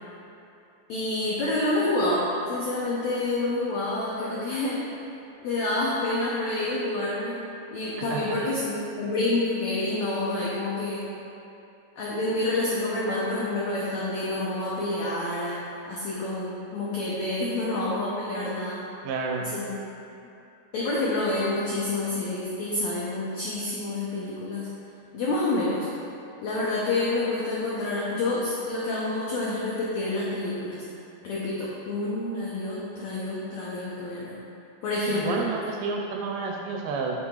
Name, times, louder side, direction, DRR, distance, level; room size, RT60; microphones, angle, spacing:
voice 1, 0.9-4.8 5.4-7.4 7.7-11.0 12.0-15.6 15.9-18.8 19.5-19.7 20.7-24.7 25.1-25.9 26.4-30.8 31.2-34.3 34.8-35.4, left 2 dB, 85° left, -7 dB, 1.5 m, -28 dB
voice 2, 8.0-8.4 19.0-19.5 35.1-37.2, right 4 dB, 80° right, 0 dB, 2.1 m, -30 dB
8.6 x 5.7 x 2.4 m, 2.7 s
omnidirectional pair, 4.3 m